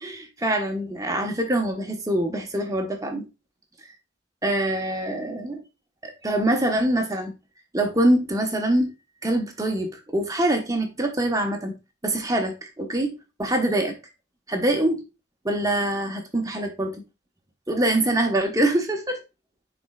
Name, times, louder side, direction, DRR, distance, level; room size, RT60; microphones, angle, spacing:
voice 1, 0.0-3.2 4.4-5.6 6.0-7.3 7.7-8.9 9.2-11.7 12.0-13.1 13.4-13.9 14.5-15.0 15.4-16.9 17.7-19.2, right 1 dB, 20° right, 1.1 m, -24 dB
11.0 x 4.4 x 2.4 m
head